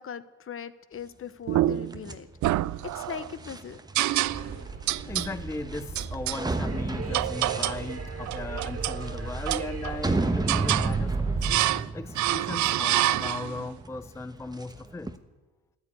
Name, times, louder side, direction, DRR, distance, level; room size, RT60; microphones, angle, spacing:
voice 1, 0.0-2.3 2.9-3.8, left 8 dB, 45° left, 15 dB, 0.9 m, -40 dB
sound 1, 1.5-2.0 2.4-3.3 3.9-4.6 4.9-5.3 5.9-6.4 7.1-7.9 8.3-9.0 9.5-10.1 10.5-10.9 11.4-11.9 12.1-13.6, right 15 dB, 75° right, 0.5 m, -27 dB
sound 2, 1.9-15.2, right 2 dB, 15° right, 1.1 m, -34 dB
sound 3, 4.3-11.6, right 4 dB, 45° right, 2.4 m, -36 dB
voice 2, 5.1-15.1, left 3 dB, 10° left, 14 dB, 0.4 m, -37 dB
14.0 x 9.8 x 9.5 m, 1.2 s
cardioid pair, 90°, 30 cm